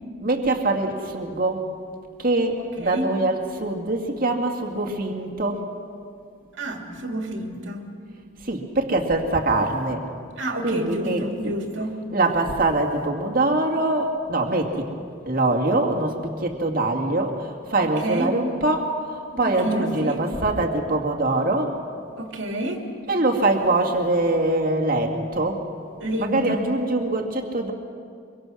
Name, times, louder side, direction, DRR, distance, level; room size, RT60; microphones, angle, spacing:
voice 1, 0.2-1.7 2.2-5.7 8.4-10.1 10.6-11.5 12.1-14.9 15.3-21.8 23.1-25.7 26.2-27.7, right 2 dB, 45° right, 2 dB, 2.2 m, -23 dB
voice 2, 6.5-7.9 10.4-11.9 17.8-18.3 19.4-20.2 22.2-22.8 26.0-26.6, right 1 dB, 60° right, 2 dB, 2.5 m, -29 dB
24.5 x 24.0 x 6.4 m, 2.3 s
head